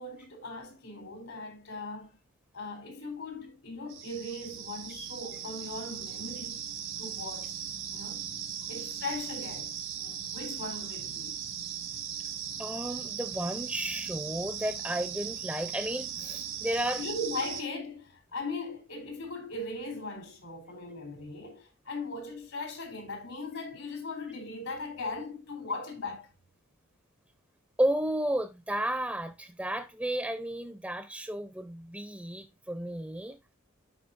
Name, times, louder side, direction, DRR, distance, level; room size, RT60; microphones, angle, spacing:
voice 1, 0.0-2.2 2.5-6.7 7.0-7.5 7.9-8.3 8.7-11.4 17.0-26.3, left 2 dB, 80° left, 3.7 m, -39 dB
sound 1, 3.9-17.6, right 8 dB, 80° right, 1.7 m, -38 dB
voice 2, 12.6-17.0 27.8-33.4, right 1 dB, 5° right, 0.6 m, -33 dB
12.5 x 5.0 x 2.6 m
head